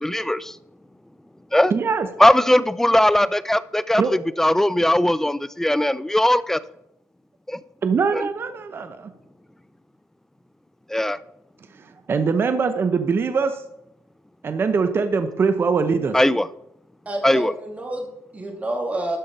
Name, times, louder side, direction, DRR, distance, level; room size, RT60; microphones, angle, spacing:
voice 1, 0.0-0.5 1.5-1.7 2.2-4.0 4.4-6.6 7.5-7.6 8.1-8.2 10.9-11.2 16.1-16.5 17.2-17.5, left 1 dB, 5° left, 17 dB, 0.4 m, -19 dB
voice 2, 1.7-2.1 4.0-4.1 7.8-9.1 11.8-13.6 14.4-16.2, right 5 dB, 40° right, 9 dB, 0.8 m, -22 dB
voice 3, 17.1-19.2, right 1 dB, 25° right, 1 dB, 2.6 m, -29 dB
12.0 x 5.6 x 4.2 m, 0.80 s
cardioid pair, 95°, 6 cm